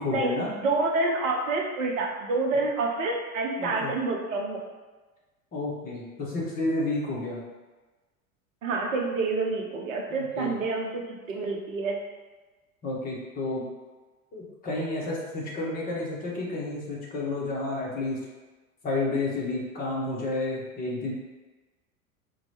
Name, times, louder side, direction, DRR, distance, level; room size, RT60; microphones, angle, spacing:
voice 1, 0.0-0.5 3.6-3.9 5.5-7.4 10.1-10.5 12.8-13.6 14.3-18.2 18.8-21.1, left 2 dB, 20° left, -4 dB, 0.9 m, -31 dB
voice 2, 0.6-4.6 8.6-12.0, right 3 dB, 65° right, 1 dB, 0.8 m, -28 dB
4.2 x 2.2 x 2.9 m, 1.2 s
figure-of-eight pair, 85°, 43 cm